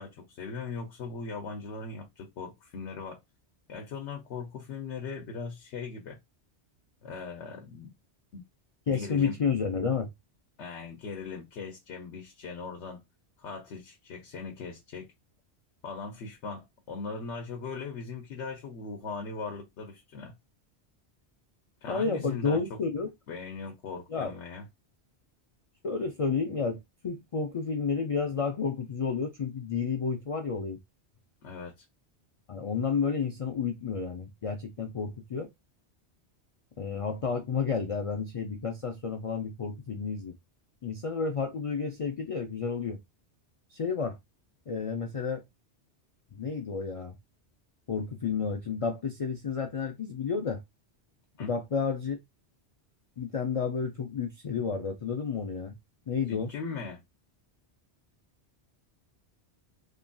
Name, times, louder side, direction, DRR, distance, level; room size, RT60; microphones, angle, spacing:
voice 1, 0.0-3.2 3.7-6.2 7.0-7.9 8.3-8.4 8.9-9.4 10.6-13.0 13.4-15.1 15.8-20.3 21.8-22.8 23.3-24.7 31.4-31.8 51.4-51.5 56.3-57.0, left 4 dB, 90° left, 1.0 m, -39 dB
voice 2, 8.9-10.1 21.9-23.1 24.1-24.3 25.8-30.8 32.5-35.5 36.8-40.4 40.8-43.0 43.7-44.2 44.7-45.4 46.3-47.2 47.9-50.6 51.4-52.2 53.2-55.8 56.1-56.5, left 5 dB, 60° left, 0.3 m, -31 dB
3.0 x 2.5 x 2.2 m
omnidirectional pair, 1.2 m